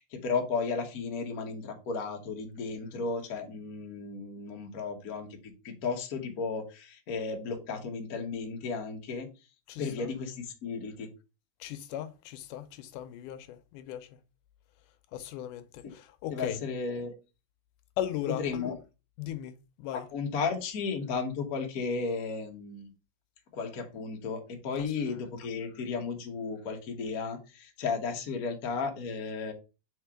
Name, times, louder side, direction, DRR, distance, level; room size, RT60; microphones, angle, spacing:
voice 1, 0.0-5.3 5.6-9.3 9.8-11.1 15.8-15.9 16.3-17.1 18.4-18.7 19.9-22.9 23.5-29.5, left 4 dB, 65° left, 0.9 m, -34 dB
voice 2, 9.7-10.1 11.6-14.1 15.1-16.6 18.0-18.7 19.2-19.5 19.8-20.1 24.8-24.9, left 11 dB, 85° left, 2.2 m, -37 dB
4.8 x 4.5 x 4.8 m
omnidirectional pair, 3.7 m